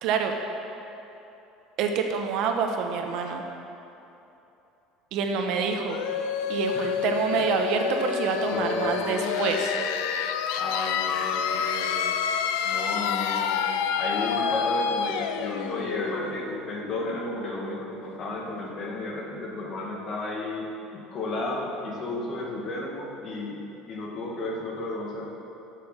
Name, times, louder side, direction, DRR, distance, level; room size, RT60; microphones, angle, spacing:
voice 1, 0.0-0.3 1.8-3.4 5.1-6.0 6.5-9.7, right 5 dB, 55° right, 4 dB, 1.0 m, -27 dB
sound 1, 5.9-17.4, left 7 dB, 85° left, 0.6 m, -28 dB
voice 2, 8.4-9.7 10.6-12.1 12.6-13.7 14.0-25.3, left 2 dB, 35° left, -1 dB, 1.7 m, -33 dB
11.0 x 6.8 x 6.6 m, 2.9 s
cardioid pair, 160°, 0 cm